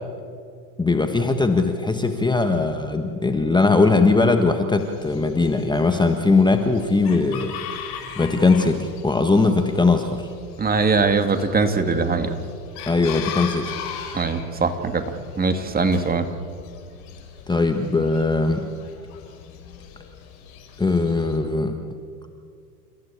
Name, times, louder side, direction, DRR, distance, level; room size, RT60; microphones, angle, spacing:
voice 1, 0.8-7.6 8.2-10.3 12.9-13.7 17.5-18.7 20.8-21.8, left 3 dB, 10° left, 6 dB, 1.4 m, -20 dB
Chicken rooster, 4.8-21.4, left 8 dB, 60° left, 5.8 m, -39 dB
voice 2, 10.6-12.3 14.1-15.0 15.4-16.3, right 4 dB, 20° right, 8 dB, 2.2 m, -21 dB
29.5 x 15.5 x 8.5 m, 2.2 s
hypercardioid pair, 100°, 48 cm